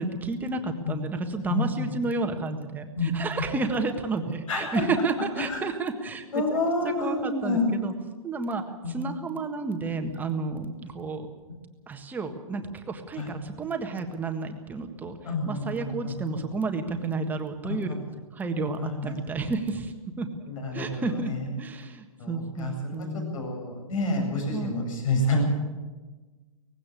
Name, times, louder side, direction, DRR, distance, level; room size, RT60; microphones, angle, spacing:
voice 1, 0.0-6.6 6.8-7.9 8.2-11.3 11.9-18.0 18.3-20.3 20.7-21.3 21.6-23.4 24.5-24.8, right 3 dB, 10° right, 5 dB, 1.6 m, -31 dB
voice 2, 4.5-4.8 5.5-5.6 6.3-7.7 8.8-9.1 13.2-13.3 15.2-16.1 17.7-17.8 18.8-19.2 20.5-21.4 22.2-25.4, left 2 dB, 70° left, 2 dB, 8.0 m, -28 dB
19.0 x 16.0 x 8.5 m, 1.3 s
hypercardioid pair, 150°, 18 cm